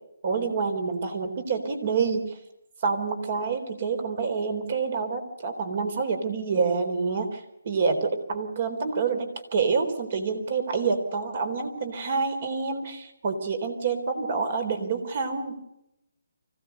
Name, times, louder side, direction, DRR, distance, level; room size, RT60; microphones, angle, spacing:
voice 1, 0.2-2.4 2.8-15.6, right 5 dB, 45° right, 7 dB, 3.8 m, -27 dB
25.0 x 16.5 x 6.7 m, 0.85 s
hypercardioid pair, 160°, 0 cm